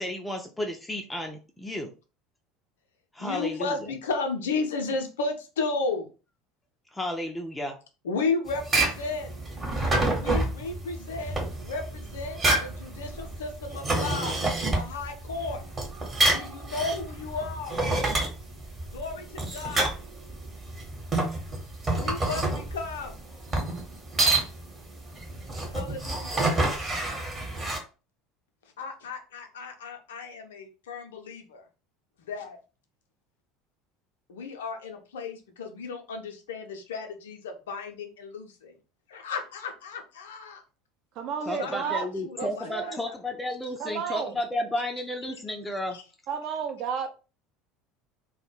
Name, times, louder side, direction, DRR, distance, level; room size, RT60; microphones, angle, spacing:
voice 1, 0.0-1.9 3.1-3.9 6.9-7.7 41.5-46.0, left 1 dB, 10° left, 0.4 m, -32 dB
voice 2, 3.2-6.1 8.0-9.3 10.1-11.4 11.6-14.4 14.7-15.6 16.3-17.8 18.9-19.9 21.9-23.2 25.7-26.5 28.8-31.6 32.2-32.6 34.3-38.7 39.1-40.6 41.5-42.9 45.9-46.0, left 4 dB, 70° left, 0.5 m, -34 dB
sound 1, 8.5-27.8, right 2 dB, 25° right, 0.9 m, -28 dB
voice 3, 41.2-42.1 42.4-43.0 43.8-44.4 46.3-47.1, right 7 dB, 50° right, 0.4 m, -32 dB
2.2 x 2.1 x 3.1 m
figure-of-eight pair, 70°, 0 cm